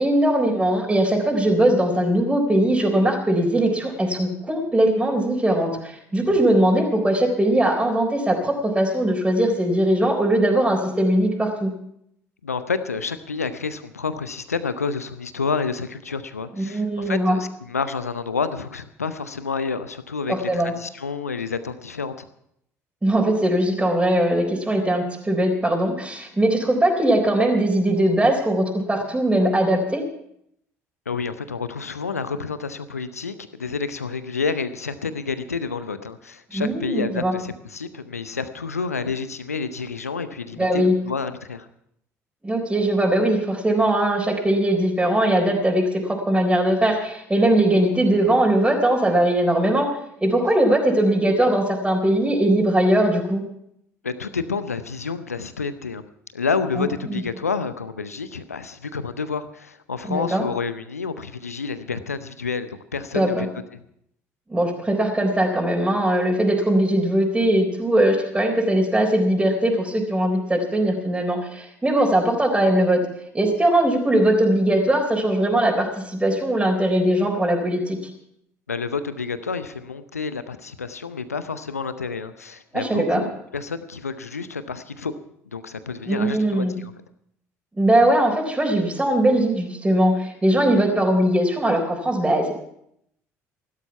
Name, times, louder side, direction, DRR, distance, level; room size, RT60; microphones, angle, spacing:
voice 1, 0.0-11.7 16.6-17.4 20.3-20.7 23.0-30.0 36.5-37.4 40.6-40.9 42.4-49.9 50.2-53.4 56.8-57.2 60.1-60.5 63.1-63.5 64.5-73.0 73.3-78.0 82.7-83.2 86.1-86.8 87.8-92.5, right 1 dB, 15° right, 0 dB, 3.9 m, -20 dB
voice 2, 12.4-22.3 31.1-41.7 54.0-56.0 56.3-63.5 78.7-85.1 85.5-86.9, left 5 dB, 85° left, 13 dB, 0.7 m, -29 dB
16.5 x 12.5 x 5.8 m, 0.73 s
figure-of-eight pair, 55°, 8 cm